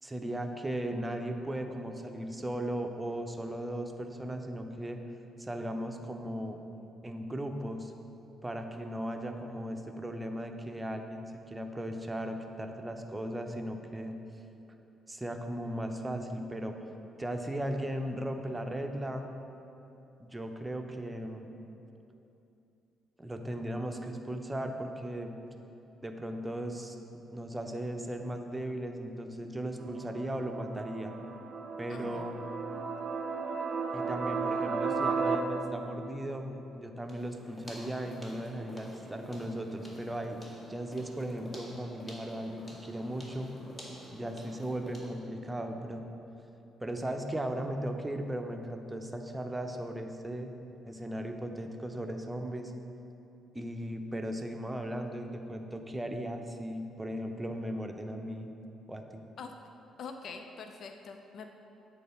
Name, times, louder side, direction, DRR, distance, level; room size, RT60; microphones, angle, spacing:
voice 1, 0.0-5.0 5.4-6.6 7.0-7.9 8.4-14.2 15.1-16.9 17.2-19.3 20.2-21.5 23.2-25.4 26.0-27.0 27.3-31.1 31.8-32.4 33.9-40.4 40.7-43.5 44.1-46.0 46.8-50.5 50.9-52.7 53.5-58.5 58.9-59.2, right 1 dB, 15° right, 5 dB, 0.7 m, -37 dB
sound 1, 29.8-35.4, right 5 dB, 55° right, 0.5 m, -34 dB
voice 2, 31.9-32.3 59.4-59.5 60.0-61.5, left 5 dB, 55° left, 5 dB, 0.4 m, -44 dB
sound 2, 37.1-45.3, equal, 25° left, 1.8 m, -49 dB
8.1 x 4.0 x 5.8 m, 2.9 s
figure-of-eight pair, 45°, 0 cm